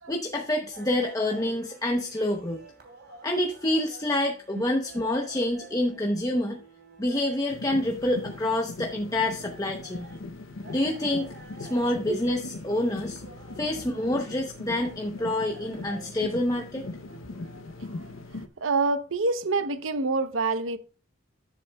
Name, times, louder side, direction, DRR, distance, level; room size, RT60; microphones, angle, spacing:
voice 1, 0.1-2.6 3.2-6.6 7.0-10.1 10.7-11.3 11.6-13.2 13.6-16.9, left 1 dB, 15° left, 0.8 m, -27 dB
sound 1, 0.7-17.8, right 3 dB, 55° right, 3.2 m, -51 dB
sound 2, 7.5-18.5, left 2 dB, 85° left, 0.7 m, -40 dB
voice 2, 18.6-20.8, right 3 dB, 80° right, 0.8 m, -26 dB
13.0 x 7.6 x 2.3 m
head